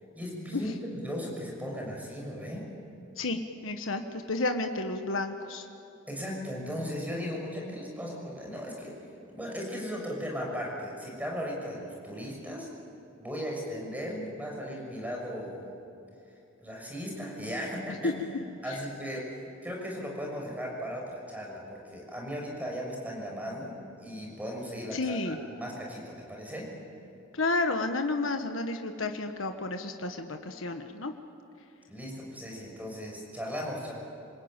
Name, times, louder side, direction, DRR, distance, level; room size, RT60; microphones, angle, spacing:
voice 1, 0.1-2.7 6.1-8.9 9.3-12.7 13.2-15.6 16.6-18.1 18.6-19.3 19.6-26.7 31.9-33.9, equal, 10° right, -1 dB, 6.2 m, -37 dB
voice 2, 3.2-5.7 18.0-18.2 24.9-25.4 27.3-31.1, left 2 dB, 85° left, 5 dB, 1.4 m, -31 dB
27.0 x 21.0 x 9.0 m, 2.7 s
head